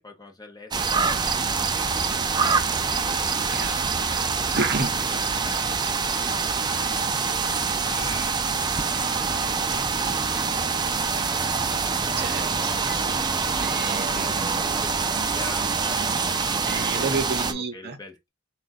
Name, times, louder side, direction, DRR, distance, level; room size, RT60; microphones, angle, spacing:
voice 1, 0.0-2.9 3.7-6.9 7.2-8.8 9.1-11.5 13.5-18.3, left 2 dB, 20° left, 0.8 m, -45 dB
sound 1, 0.7-17.5, right 5 dB, 20° right, 0.4 m, -25 dB
voice 2, 3.5-4.1 4.5-4.9 12.1-13.2 13.5-14.3 16.7-18.0, right 4 dB, 50° right, 0.8 m, -30 dB
3.8 x 2.4 x 4.0 m
head